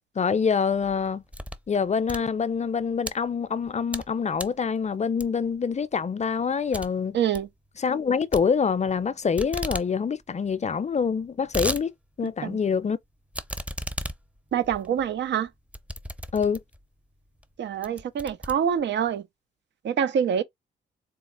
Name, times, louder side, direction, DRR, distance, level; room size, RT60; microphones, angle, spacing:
voice 1, 0.2-1.2 1.7-7.2 7.8-11.9 12.2-13.0 16.3-16.6, left 6 dB, 35° left, 0.5 m, -25 dB
sound 1, 0.7-1.7 2.0-3.1 3.6-4.1 4.4-4.6 5.2-5.6 5.9-6.0 6.3-6.4 6.7-6.9 7.2-7.5 8.3-9.1 9.4-9.9 10.2-10.3 10.5-10.6 11.1-11.8 12.3-12.4 13.3-16.8 17.4-17.5 17.8-19.1, equal, 5° right, 0.6 m, -35 dB
voice 2, 7.1-7.5 12.4-12.6 14.5-15.5 17.6-19.2 19.8-20.4, right 8 dB, 75° right, 0.6 m, -25 dB
4.1 x 2.0 x 3.8 m
supercardioid pair, 55°, 19 cm